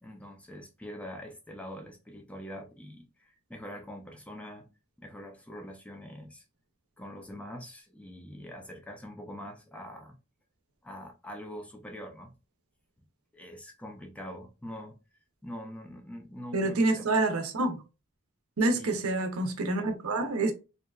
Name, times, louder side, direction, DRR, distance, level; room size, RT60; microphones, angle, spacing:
voice 1, 0.0-4.7 5.0-6.4 7.0-10.2 10.8-12.3 13.3-15.0 15.4-17.1 18.6-19.0, equal, 5° left, 0.4 m, -44 dB
voice 2, 16.5-17.8 18.6-20.5, right 2 dB, 75° right, 0.6 m, -27 dB
2.7 x 2.2 x 2.2 m
head